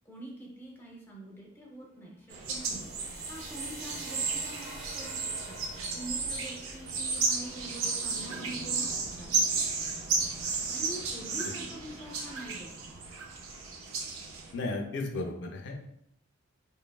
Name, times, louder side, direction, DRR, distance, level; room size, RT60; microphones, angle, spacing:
voice 1, 0.1-9.3 10.7-12.9, right 1 dB, 10° left, -3 dB, 0.5 m, -45 dB
sound 1, 2.3-14.5, right 4 dB, 90° right, 0.4 m, -33 dB
sound 2, 2.5-10.5, right 1 dB, 25° right, 1.1 m, -48 dB
voice 2, 14.5-15.9, left 2 dB, 60° left, 3 dB, 0.4 m, -35 dB
2.7 x 2.3 x 2.3 m, 0.75 s
head